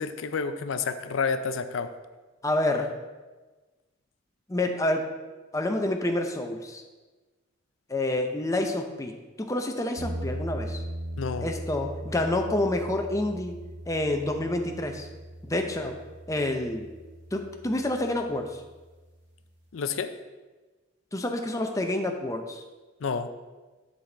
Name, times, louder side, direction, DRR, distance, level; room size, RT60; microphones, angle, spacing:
voice 1, 0.0-1.9 11.2-11.5 19.7-20.2 23.0-23.3, left 5 dB, 85° left, 10 dB, 0.5 m, -29 dB
voice 2, 2.4-2.9 4.5-5.2 5.5-6.8 7.9-10.8 11.4-13.6 13.9-15.1 15.5-16.0 16.3-16.9 17.3-18.6 21.1-22.6, left 1 dB, 15° left, 4 dB, 0.6 m, -28 dB
sound 1, 10.0-18.9, right 1 dB, 60° right, 1.3 m, -39 dB
11.5 x 4.1 x 3.4 m, 1.2 s
head